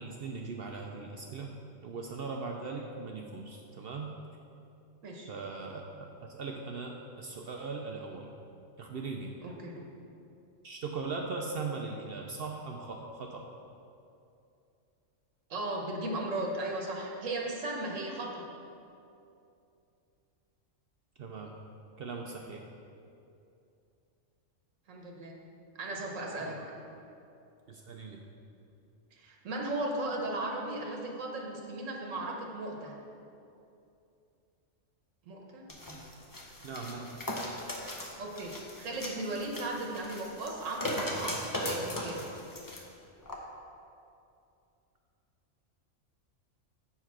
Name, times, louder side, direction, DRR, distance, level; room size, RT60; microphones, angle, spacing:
voice 1, 0.0-4.1 5.3-8.3 8.8-9.3 10.6-13.5 21.2-21.6 22.0-22.7 26.5-26.6 27.7-28.2 36.6-37.2, right 4 dB, 60° right, 2 dB, 0.7 m, -39 dB
voice 2, 9.4-9.8 15.5-18.5 24.9-25.4 25.8-26.5 29.2-32.9 35.3-35.6 38.2-38.5 38.8-42.3, right 2 dB, 90° right, 0 dB, 1.3 m, -36 dB
sound 1, 35.7-42.8 43.3-43.4, left 1 dB, 20° left, 0.6 m, -38 dB
7.0 x 4.9 x 5.9 m, 2.6 s
omnidirectional pair, 1.3 m